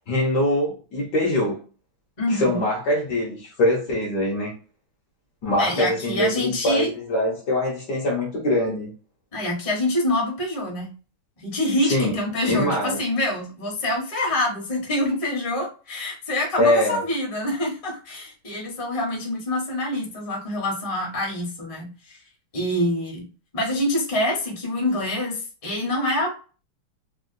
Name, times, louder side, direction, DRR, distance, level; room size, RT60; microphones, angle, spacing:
voice 1, 0.1-1.6 2.3-4.5 5.4-8.9 11.8-12.1 12.4-13.0 16.6-17.0, left 1 dB, 60° left, 1.4 m, -23 dB
voice 2, 2.2-2.6 5.6-6.9 9.3-10.9 11.4-22.2 22.5-23.3 23.5-26.3, left 1 dB, 25° left, 0.8 m, -26 dB
3.6 x 2.4 x 2.6 m
omnidirectional pair, 2.3 m